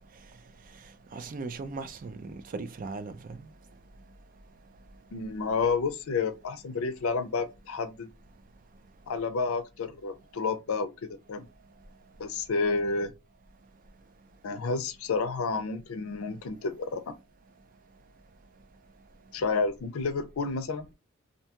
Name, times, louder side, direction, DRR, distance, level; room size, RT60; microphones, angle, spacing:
voice 1, 1.1-3.5, right 3 dB, 40° right, 0.4 m, -38 dB
voice 2, 5.1-8.1 9.1-11.4 12.2-13.1 14.4-17.0 19.3-20.9, left 4 dB, 85° left, 0.5 m, -30 dB
2.6 x 2.2 x 2.8 m
head